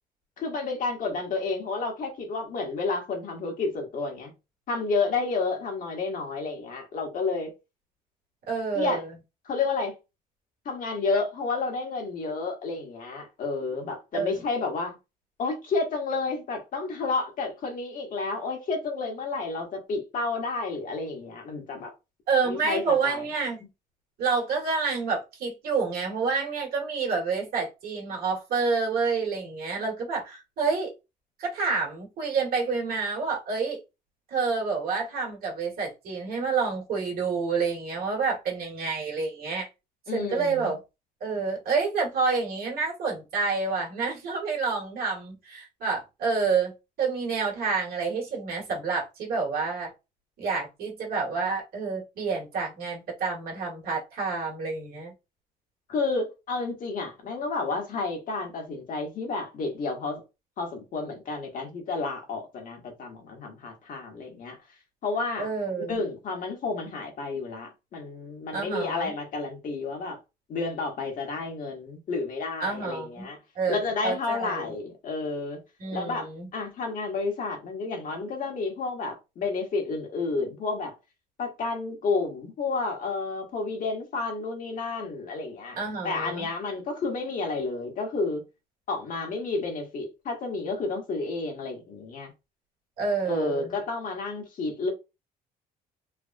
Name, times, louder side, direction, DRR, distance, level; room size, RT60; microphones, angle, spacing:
voice 1, 0.4-4.3 4.7-7.5 8.7-9.0 9.4-9.9 10.6-14.9 15.4-21.9 22.4-23.2 40.1-40.7 55.9-60.2 60.6-64.6 65.0-65.5 65.9-70.2 70.5-73.4 73.7-75.6 75.9-80.9 81.4-85.8 86.0-88.4 88.9-92.3 93.3-94.9, left 3 dB, 55° left, 1.2 m, -31 dB
voice 2, 8.5-9.1 14.1-14.4 22.3-23.6 24.2-30.9 31.4-33.8 34.3-39.7 40.1-40.8 41.2-46.7 47.0-49.9 50.4-55.1 65.4-66.0 68.5-69.1 72.6-73.3 73.5-74.7 75.8-76.5 85.8-86.5 93.0-93.7, right 4 dB, 60° right, 1.6 m, -28 dB
3.4 x 2.2 x 2.5 m
cardioid pair, 110°, 17 cm